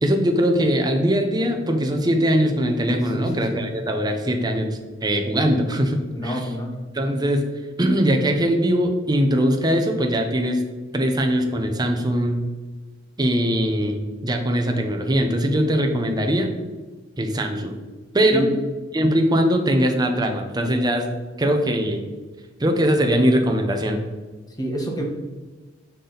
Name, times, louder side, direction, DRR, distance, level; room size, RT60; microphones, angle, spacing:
voice 1, 0.0-4.7 5.0-6.4 6.9-7.4 7.8-10.6 10.9-12.4 13.2-16.5 17.2-17.7 18.1-18.5 18.9-22.0 22.6-24.0, equal, 20° right, 3 dB, 0.8 m, -21 dB
voice 2, 3.1-3.6 6.1-6.8 18.3-18.5 24.6-25.0, right 1 dB, 20° left, 1 dB, 1.3 m, -28 dB
6.9 x 6.1 x 3.9 m, 1.3 s
head